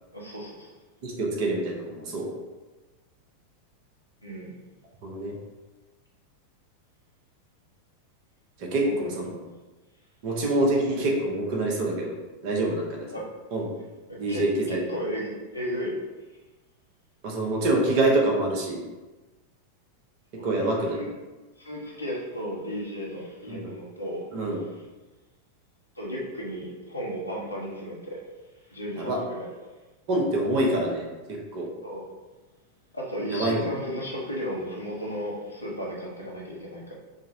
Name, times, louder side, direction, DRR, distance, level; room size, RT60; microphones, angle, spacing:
voice 1, 0.1-0.7 4.2-4.5 8.8-9.1 13.1-13.3 14.1-16.0 20.4-21.1 21.6-24.2 26.0-28.2 28.7-29.5 31.8-32.0 32.9-36.9, equal, 85° left, -4 dB, 0.8 m, -34 dB
voice 2, 1.0-2.3 5.0-5.3 8.6-9.4 10.2-12.1 12.4-13.1 13.5-13.7 14.2-14.8 17.2-18.8 20.4-21.0 23.5-23.7 24.3-24.6 28.9-29.2 30.1-31.7 33.3-33.6, right 2 dB, 45° right, 0 dB, 0.8 m, -26 dB
4.9 x 2.1 x 2.6 m, 1.2 s
figure-of-eight pair, 90°, 0 cm